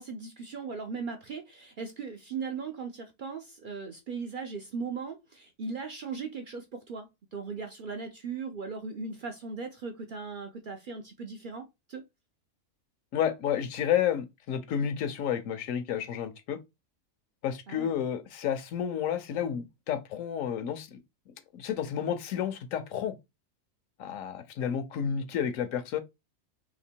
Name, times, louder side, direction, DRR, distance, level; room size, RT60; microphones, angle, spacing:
voice 1, 0.0-12.1 17.7-17.9, right 5 dB, 70° right, 0.5 m, -38 dB
voice 2, 13.1-16.6 17.4-21.0 21.5-23.1 24.0-26.0, left 9 dB, 70° left, 1.0 m, -31 dB
3.0 x 2.9 x 4.3 m
omnidirectional pair, 1.5 m